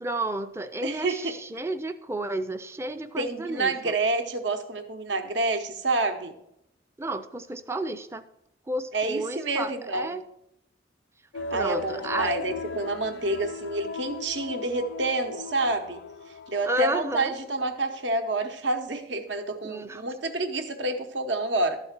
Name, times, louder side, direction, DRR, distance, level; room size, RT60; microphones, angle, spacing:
voice 1, 0.0-3.9 7.0-8.2 8.7-10.2 11.5-12.4 16.6-17.3 19.6-20.0, right 1 dB, 15° right, 10 dB, 0.5 m, -31 dB
voice 2, 0.8-1.3 3.2-6.3 8.9-10.1 11.5-16.0 16.5-21.8, right 2 dB, 65° right, 7 dB, 0.9 m, -28 dB
sound 1, 11.3-17.6 17.9-18.0, left 3 dB, 70° left, 0.4 m, -38 dB
12.5 x 4.1 x 6.6 m, 0.79 s
head